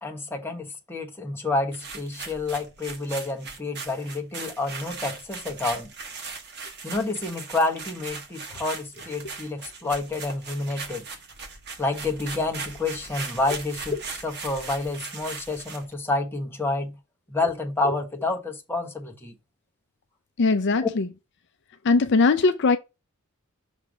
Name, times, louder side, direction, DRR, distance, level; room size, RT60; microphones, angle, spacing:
voice 1, 0.0-5.9 6.8-11.0 11.8-16.9 17.3-19.3 20.8-20.9, left 2 dB, 10° left, 1.1 m, -29 dB
sound 1, 1.7-15.9, right 4 dB, 50° right, 1.2 m, -39 dB
voice 2, 20.4-21.1 21.8-22.8, left 3 dB, 55° left, 0.5 m, -20 dB
6.1 x 3.4 x 5.0 m
head